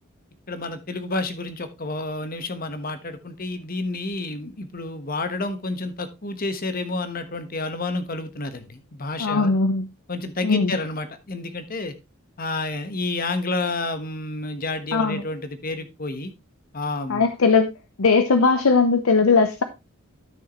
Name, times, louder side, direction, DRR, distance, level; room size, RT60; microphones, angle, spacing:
voice 1, 0.5-9.5 10.1-11.9 12.4-16.3 16.7-17.2, left 2 dB, 40° left, 10 dB, 1.2 m, -30 dB
voice 2, 9.2-9.9 10.4-10.7 14.9-15.2 17.1-17.7 18.0-19.6, left 4 dB, 75° left, 9 dB, 0.7 m, -19 dB
12.0 x 6.5 x 3.0 m, 0.24 s
head